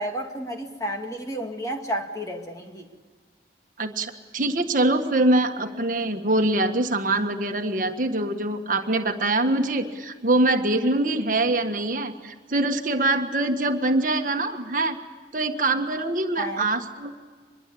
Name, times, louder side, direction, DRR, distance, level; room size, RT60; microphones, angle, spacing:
voice 1, 0.0-2.9 16.4-16.6, equal, 20° left, 2 dB, 2.3 m, -31 dB
voice 2, 3.8-15.0 15.3-17.1, right 2 dB, 50° right, 5 dB, 1.7 m, -24 dB
25.5 x 22.0 x 8.6 m, 1.5 s
head